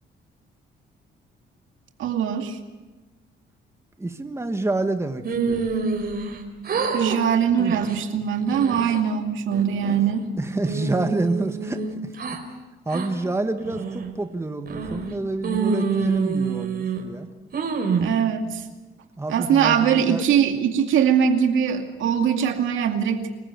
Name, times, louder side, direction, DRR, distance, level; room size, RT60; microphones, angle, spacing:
voice 1, 2.0-2.6 6.9-10.3 18.0-18.6 19.3-23.3, right 8 dB, 80° right, 5 dB, 2.4 m, -22 dB
voice 2, 4.0-5.7 9.8-10.0 10.4-12.1 12.8-17.3 19.2-20.2, right 2 dB, 15° right, 7 dB, 1.5 m, -28 dB
sound 1, 5.2-6.4 6.6-7.2 7.6-7.9 8.4-9.0 9.5-10.3 10.6-12.4 12.9-13.1 13.6-14.1 14.7-15.1 15.4-17.0 17.5-18.1, right 5 dB, 50° right, 4.5 m, -27 dB
26.0 x 15.0 x 9.2 m, 1.2 s
cardioid pair, 90°, 20 cm